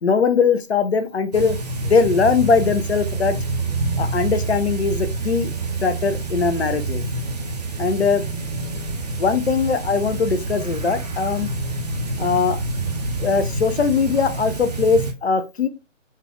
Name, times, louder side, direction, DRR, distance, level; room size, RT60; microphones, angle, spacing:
voice 1, 0.0-3.4 4.0-5.5 5.8-7.0 7.8-8.2 9.2-11.5 12.2-12.6 13.2-15.7, left 5 dB, 55° left, 0.7 m, -20 dB
sound 1, 1.3-15.1, right 3 dB, 35° right, 0.6 m, -27 dB
4.1 x 2.4 x 3.7 m
figure-of-eight pair, 145°, 39 cm